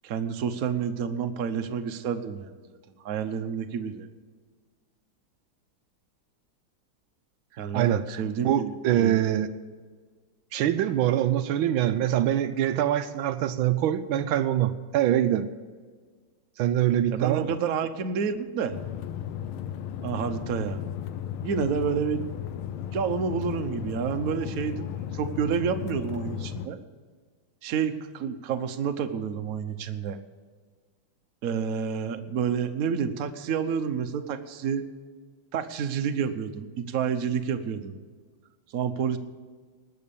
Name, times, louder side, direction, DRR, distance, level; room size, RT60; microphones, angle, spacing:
voice 1, 0.0-2.5 3.0-4.1 7.6-9.1 17.1-18.8 20.0-20.8 21.4-22.2 22.9-24.9 25.1-26.8 27.6-30.2 31.4-34.9 35.5-37.9 38.7-39.2, right 7 dB, 55° right, 7 dB, 1.1 m, -29 dB
voice 2, 7.7-9.5 10.5-15.5 16.6-17.5, right 11 dB, 85° right, 11 dB, 1.4 m, -24 dB
sound 1, 18.7-26.7, left 10 dB, 90° left, 1.5 m, -35 dB
19.5 x 6.5 x 6.9 m, 1.5 s
omnidirectional pair, 2.2 m